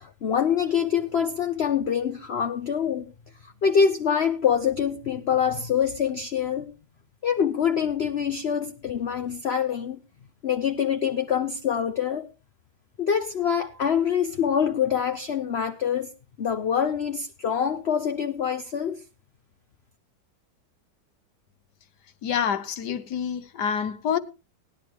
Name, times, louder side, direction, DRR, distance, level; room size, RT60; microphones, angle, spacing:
voice 1, 0.0-3.1 3.4-6.7 7.2-10.0 10.4-12.3 13.0-16.1 16.4-19.0, left 7 dB, 50° left, 0.8 m, -25 dB
voice 2, 22.2-24.2, left 7 dB, 70° left, 1.5 m, -27 dB
19.0 x 11.0 x 3.0 m
omnidirectional pair, 1.9 m